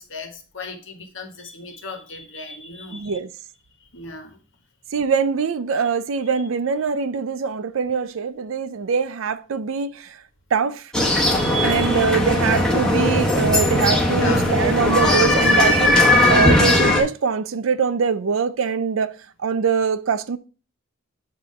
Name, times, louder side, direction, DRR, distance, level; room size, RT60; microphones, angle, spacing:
voice 1, 0.0-3.2 3.9-4.4 14.1-14.5, left 4 dB, 65° left, 1.3 m, -36 dB
voice 2, 2.9-3.3 4.9-10.2 10.5-10.9 11.6-20.4, right 6 dB, 70° right, 0.5 m, -23 dB
sound 1, 10.9-17.0, left 1 dB, 5° left, 1.1 m, -18 dB
8.5 x 2.9 x 5.4 m
head